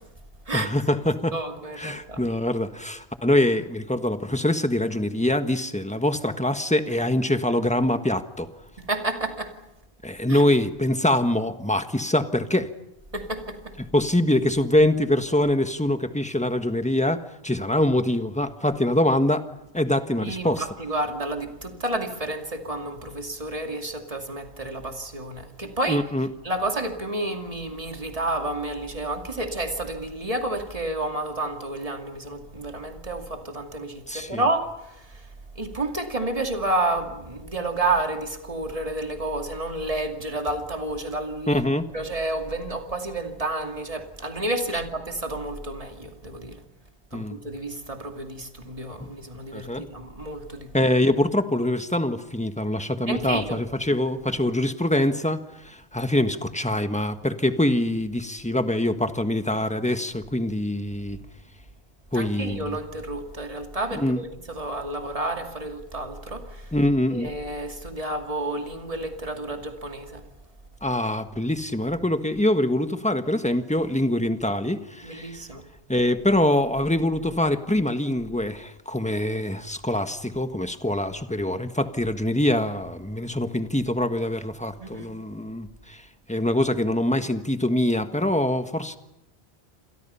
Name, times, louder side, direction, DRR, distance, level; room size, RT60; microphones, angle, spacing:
voice 1, 0.5-1.3 1.8-8.5 10.0-12.7 13.9-19.4 19.7-20.6 25.9-26.3 34.1-34.4 41.5-41.9 47.1-47.4 49.5-49.8 50.7-61.2 62.1-62.8 63.9-64.2 66.7-67.3 70.8-75.4 75.9-86.0 86.3-89.0, left 1 dB, 5° left, 1.4 m, -24 dB
voice 2, 1.3-2.3 8.8-9.6 10.3-10.4 13.1-13.7 20.2-26.0 26.4-35.2 35.6-41.6 41.9-46.6 47.1-50.7 53.0-53.6 62.1-66.7 67.1-70.2 75.0-75.6 84.8-85.1, right 2 dB, 35° right, 2.6 m, -30 dB
29.0 x 26.5 x 5.7 m
omnidirectional pair, 1.1 m